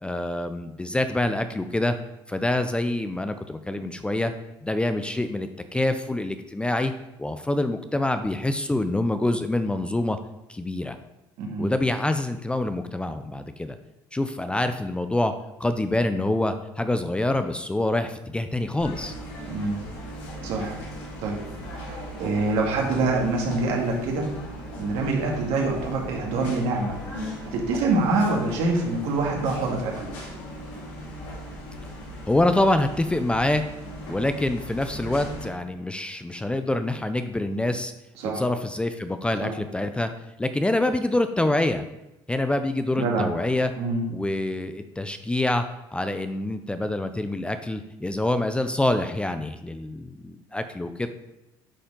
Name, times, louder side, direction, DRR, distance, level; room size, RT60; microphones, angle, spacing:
voice 1, 0.0-1.9 2.3-4.3 4.6-6.9 7.2-10.2 10.5-11.0 11.6-13.8 14.1-15.3 15.6-19.1 32.3-33.6 34.1-37.9 38.2-40.1 40.4-41.8 42.3-43.7 44.1-45.7 45.9-51.1, left 1 dB, 10° left, 9 dB, 0.5 m, -26 dB
voice 2, 11.4-11.7 19.5-19.8 20.4-20.7 21.2-21.4 21.7-24.3 24.7-27.0 27.5-30.1 38.2-38.4 39.4-39.5 42.9-43.3 43.8-44.0, right 3 dB, 70° right, 0 dB, 2.0 m, -25 dB
sound 1, 18.8-35.5, equal, 80° left, 2.5 m, -38 dB
10.0 x 4.3 x 3.8 m, 0.92 s
supercardioid pair, 90°, 11 cm